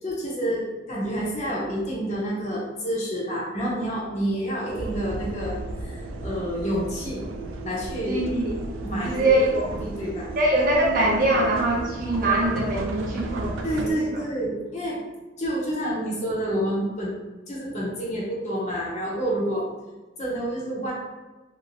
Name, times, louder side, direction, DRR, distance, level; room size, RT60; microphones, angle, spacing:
voice 1, 0.0-7.2 7.6-8.2 8.8-10.3 13.6-15.0 15.4-17.2 17.5-19.7 20.2-20.9, equal, 35° left, -5 dB, 0.7 m, -28 dB
sound 1, 4.7-13.9, right 2 dB, 85° right, 0.3 m, -34 dB
voice 2, 8.1-8.5 9.0-9.8 10.4-14.0, right 1 dB, 45° right, -3 dB, 0.6 m, -23 dB
2.9 x 2.1 x 2.5 m, 1.1 s
head